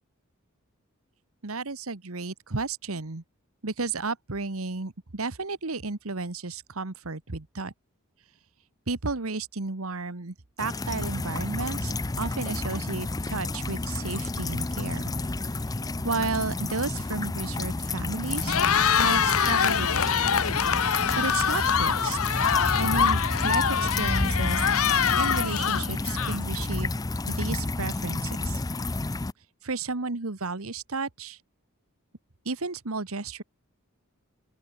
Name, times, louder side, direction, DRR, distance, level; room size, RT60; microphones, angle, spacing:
voice 1, 1.4-3.2 3.6-7.7 8.9-15.1 16.0-18.6 19.0-20.1 21.2-22.2 22.8-24.6 25.2-26.9 27.3-28.6 29.6-31.4 32.4-33.4, right 3 dB, 75° right, 1.5 m, -33 dB
sound 1, 10.6-29.3, left 2 dB, 15° left, 0.5 m, -30 dB
Cheering, 18.3-26.6, left 7 dB, 80° left, 1.2 m, -24 dB
open air
head